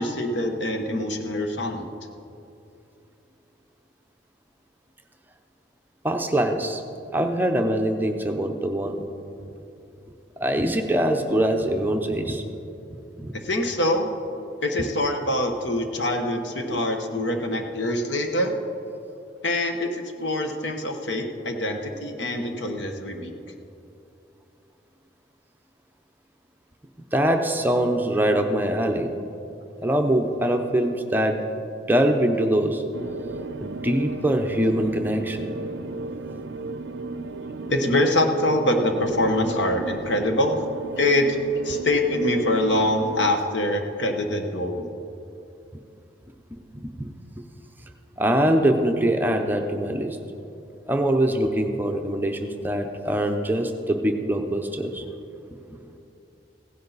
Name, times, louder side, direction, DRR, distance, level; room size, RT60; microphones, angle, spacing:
voice 1, 0.0-1.8 13.3-14.1 14.6-18.5 19.4-23.3 37.6-40.6 41.0-41.4 41.6-44.8, left 1 dB, 85° left, 4 dB, 1.2 m, -24 dB
voice 2, 6.0-6.8 7.1-9.0 10.4-12.4 13.2-13.3 16.7-16.8 27.1-29.1 29.8-31.4 31.9-32.8 33.6-35.5 46.7-47.1 48.2-50.2 50.9-55.0, right 1 dB, 10° right, 4 dB, 0.7 m, -23 dB
sound 1, 32.9-43.3, right 3 dB, 90° right, 0.4 m, -35 dB
16.0 x 10.0 x 4.1 m, 2.8 s
head